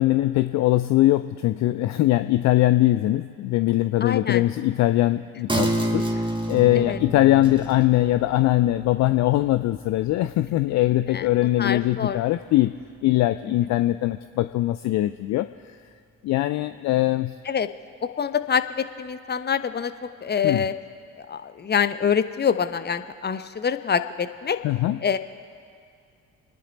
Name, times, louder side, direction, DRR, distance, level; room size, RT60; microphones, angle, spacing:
voice 1, 0.0-6.0 6.5-12.7 13.0-15.5 16.2-17.3 20.4-20.7 24.6-25.0, left 15 dB, 45° left, 12 dB, 0.5 m, -21 dB
voice 2, 4.0-4.4 6.7-7.0 10.7-10.8 11.1-11.2 11.6-12.2 13.5-13.6 17.5-17.7 18.0-19.9 20.2-20.7 21.2-24.6 25.0-25.2, left 7 dB, 25° left, 11 dB, 0.9 m, -25 dB
sound 1, 5.5-12.5 12.9-13.0, right 1 dB, 10° right, 2.0 m, -31 dB
29.5 x 10.5 x 4.1 m, 2.3 s
figure-of-eight pair, 45°, 38 cm